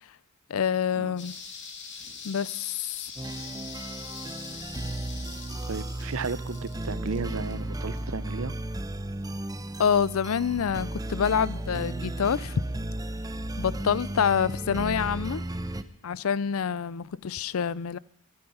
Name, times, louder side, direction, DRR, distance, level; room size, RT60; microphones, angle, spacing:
voice 1, 0.5-1.3 2.2-3.1 9.8-12.6 13.6-15.4 16.0-18.0, left 7 dB, 70° left, 0.5 m, -27 dB
sound 1, 1.2-8.2 8.5-8.6, left 5 dB, 55° left, 2.5 m, -43 dB
sound 2, 3.2-15.8, right 1 dB, 20° right, 0.7 m, -34 dB
voice 2, 5.6-8.5 14.0-14.2, right 4 dB, 70° right, 0.7 m, -34 dB
15.0 x 11.5 x 5.5 m
head